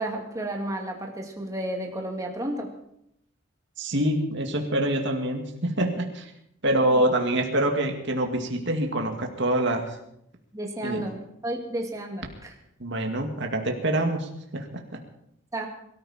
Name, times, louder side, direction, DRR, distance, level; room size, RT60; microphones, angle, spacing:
voice 1, 0.0-2.7 10.5-12.5 15.5-15.7, right 1 dB, 15° right, 1 dB, 2.5 m, -32 dB
voice 2, 3.8-6.3 6.6-9.9 10.8-11.1 12.8-15.0, right 1 dB, 65° right, 3 dB, 2.3 m, -26 dB
22.5 x 14.0 x 4.4 m, 0.76 s
head